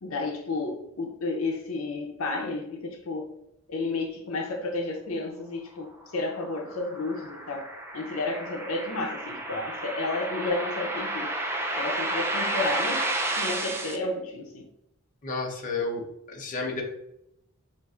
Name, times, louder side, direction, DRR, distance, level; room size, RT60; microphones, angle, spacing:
voice 1, 0.0-3.4 3.7-7.7 7.9-11.3 11.7-13.1 13.4-14.7, left 2 dB, 80° left, 2 dB, 0.6 m, -32 dB
sound 1, 6.1-14.0, right 1 dB, 10° right, 0.3 m, -31 dB
voice 2, 15.2-16.8, left 3 dB, 40° left, -1 dB, 0.8 m, -31 dB
5.6 x 2.5 x 2.4 m, 0.80 s
head